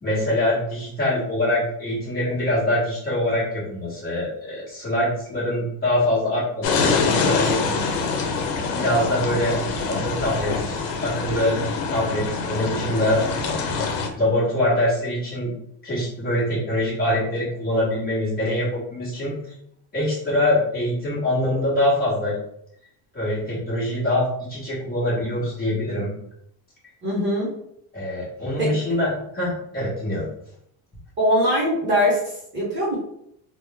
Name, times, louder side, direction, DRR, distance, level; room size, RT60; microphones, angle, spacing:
voice 1, 0.0-7.6 7.9-8.0 8.7-9.6 9.9-11.6 11.9-13.2 13.6-13.8 14.2-15.5 15.8-19.5 19.9-22.4 23.1-26.1 27.9-30.3, left 1 dB, 20° left, -8 dB, 1.1 m, -24 dB
sound 1, 6.6-14.1, left 4 dB, 85° left, 0.8 m, -25 dB
voice 2, 27.0-27.5 28.6-28.7 31.2-33.0, equal, 25° right, -7 dB, 0.8 m, -22 dB
3.0 x 2.1 x 3.4 m, 0.73 s
cardioid pair, 180°, 46 cm